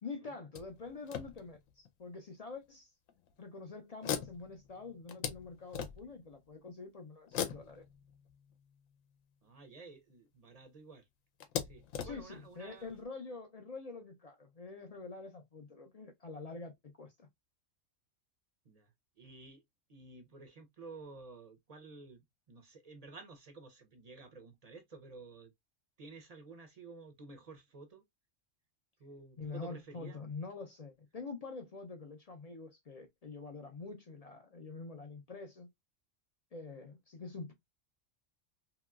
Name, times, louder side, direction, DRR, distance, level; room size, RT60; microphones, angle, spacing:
voice 1, 0.0-2.9 3.4-7.9 12.0-17.3 29.4-35.7 36.5-37.5, left 4 dB, 60° left, 0.4 m, -46 dB
sound 1, 0.5-1.9 2.6-2.7 3.1-3.3 4.0-6.3 7.3-9.0 10.1-10.2 10.5-10.6 11.4-13.0, left 8 dB, 90° left, 1.0 m, -41 dB
voice 2, 9.4-11.0 11.6-12.9 18.7-18.9 19.2-19.6 19.9-22.2 22.5-25.5 26.0-28.0 29.0-30.2, right 3 dB, 45° right, 0.5 m, -52 dB
2.9 x 2.9 x 2.2 m
omnidirectional pair, 1.3 m